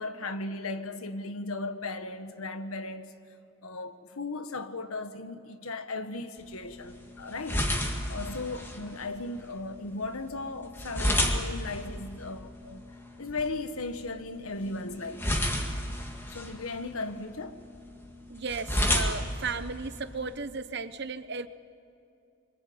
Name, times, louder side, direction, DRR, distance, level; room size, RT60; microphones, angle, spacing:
voice 1, 0.0-3.1 3.6-7.7 8.1-12.8 13.2-15.2 16.3-17.6, left 3 dB, 85° left, 1.5 m, -36 dB
sound 1, 6.4-20.4, left 1 dB, 10° left, 2.1 m, -33 dB
voice 2, 18.3-21.5, right 4 dB, 50° right, 0.9 m, -35 dB
25.5 x 25.0 x 8.7 m
head